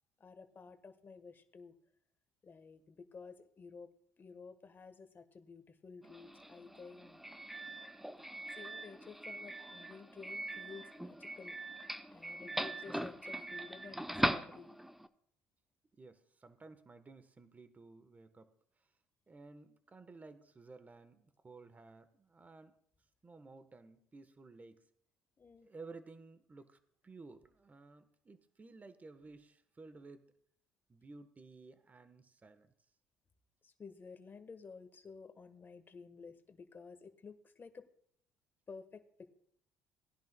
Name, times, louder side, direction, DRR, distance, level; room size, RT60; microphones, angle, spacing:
voice 1, 0.2-1.7 2.4-3.9 4.2-7.2 8.5-11.6 12.1-14.7 25.4-25.7 33.6-37.9 38.7-39.4, left 5 dB, 35° left, 10 dB, 1.2 m, -53 dB
Doorbell, 6.0-15.1, right 1 dB, 5° right, 0.7 m, -41 dB
voice 2, 15.9-18.9 19.3-22.8 23.2-24.8 25.6-30.2 30.9-32.7, right 3 dB, 25° right, 11 dB, 1.1 m, -55 dB
19.0 x 10.5 x 2.2 m, 0.68 s
supercardioid pair, 75°, 6 cm